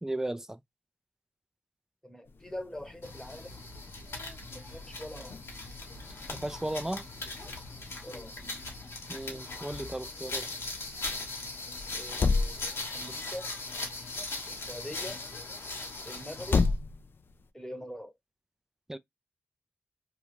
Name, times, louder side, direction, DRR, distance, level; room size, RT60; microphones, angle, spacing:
voice 1, 0.0-0.6 6.3-7.0 9.1-10.5 18.9-19.0, right 1 dB, 10° right, 0.4 m, -35 dB
voice 2, 2.0-3.6 4.5-5.3 8.0-8.3 11.9-12.6 12.9-13.5 14.4-15.2 16.0-16.6 17.5-18.1, equal, 10° left, 1.0 m, -43 dB
sound 1, 2.3-17.5, left 4 dB, 55° left, 0.4 m, -37 dB
sound 2, 3.0-16.7, left 3 dB, 75° left, 1.0 m, -40 dB
2.5 x 2.3 x 2.9 m
supercardioid pair, 40°, 4 cm